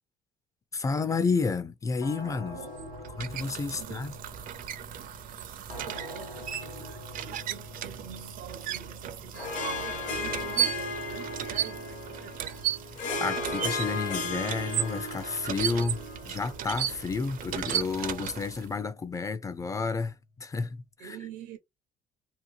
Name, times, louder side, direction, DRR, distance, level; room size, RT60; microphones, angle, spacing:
voice 1, 0.7-2.6 3.2-4.1 13.2-21.2, left 4 dB, 20° left, 0.4 m, -31 dB
sound 1, 2.0-20.9, left 1 dB, 90° left, 1.3 m, -46 dB
Water pumping, 2.5-18.8, right 11 dB, 55° right, 0.4 m, -36 dB
voice 2, 2.5-3.1 3.7-4.1 4.9-12.7 21.0-21.6, right 8 dB, 90° right, 0.7 m, -46 dB
Harp, 9.3-18.0, left 2 dB, 50° left, 0.9 m, -36 dB
2.8 x 2.2 x 2.5 m
cardioid pair, 110°, 17 cm